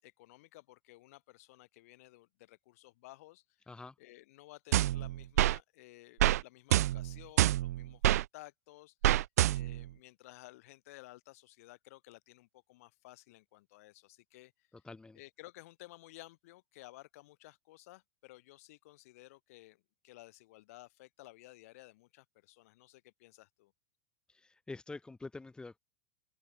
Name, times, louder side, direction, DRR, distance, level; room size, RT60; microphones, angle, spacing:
voice 1, 0.0-3.7 4.0-14.7 15.1-23.7, left 19 dB, 70° left, 6.7 m, -55 dB
sound 1, 4.7-5.6 6.2-6.4 6.7-8.2 9.0-9.9, right 14 dB, 80° right, 0.5 m, -27 dB
voice 2, 14.8-15.2 24.3-25.8, left 3 dB, 10° left, 2.8 m, -46 dB
open air
hypercardioid pair, 110°, 8 cm